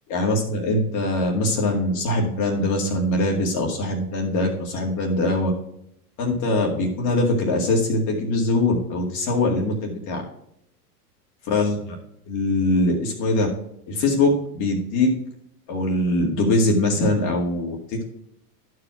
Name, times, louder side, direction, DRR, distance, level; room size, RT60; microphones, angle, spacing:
voice 1, 0.1-5.5 6.2-10.2 11.5-12.0 12.3-13.5 13.9-15.1 15.7-18.0, left 2 dB, 40° left, 0 dB, 2.1 m, -22 dB
11.5 x 4.8 x 5.7 m, 0.75 s
supercardioid pair, 135°, 47 cm